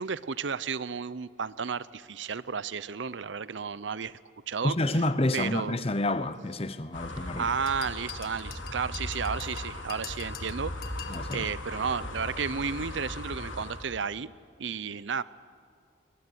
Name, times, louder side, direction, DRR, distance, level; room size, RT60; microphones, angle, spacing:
voice 1, 0.0-4.2 4.5-4.8 5.3-5.8 7.2-10.9 11.3-14.3 14.6-15.2, right 6 dB, 70° right, 0.6 m, -33 dB
voice 2, 4.6-7.5 11.1-11.5, left 1 dB, 30° left, 0.9 m, -29 dB
sound 1, 6.9-14.0, left 1 dB, 85° left, 3.1 m, -38 dB
sound 2, 7.7-11.5, left 9 dB, 50° left, 1.8 m, -45 dB
22.5 x 21.5 x 9.9 m
head